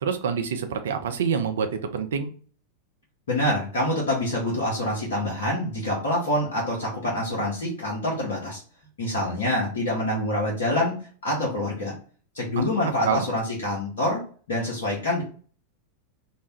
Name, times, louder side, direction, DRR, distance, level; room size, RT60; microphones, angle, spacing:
voice 1, 0.0-2.3 12.6-12.7 13.0-13.3, right 6 dB, 60° right, 8 dB, 0.4 m, -26 dB
voice 2, 3.3-8.6 9.0-11.9 12.3-14.2 14.5-15.2, left 1 dB, 65° left, -4 dB, 0.8 m, -26 dB
2.5 x 2.1 x 3.0 m, 0.42 s
figure-of-eight pair, 90°, 0 cm